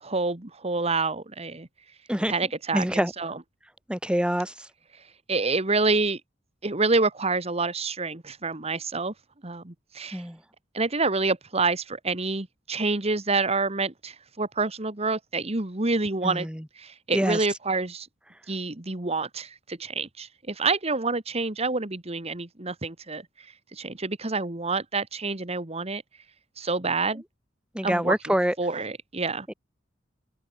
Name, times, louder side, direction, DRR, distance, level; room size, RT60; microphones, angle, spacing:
voice 1, 0.0-1.7 2.3-3.4 5.3-6.2 6.6-9.1 9.4-10.2 10.7-16.5 16.8-18.1 18.5-23.2 23.7-26.0 26.6-27.2 27.8-29.5, right 3 dB, 35° right, 1.8 m, -27 dB
voice 2, 2.7-3.1 3.9-4.5 10.1-10.4 16.2-16.6 17.1-17.4 27.7-28.5 29.5-29.6, equal, 5° right, 1.9 m, -25 dB
head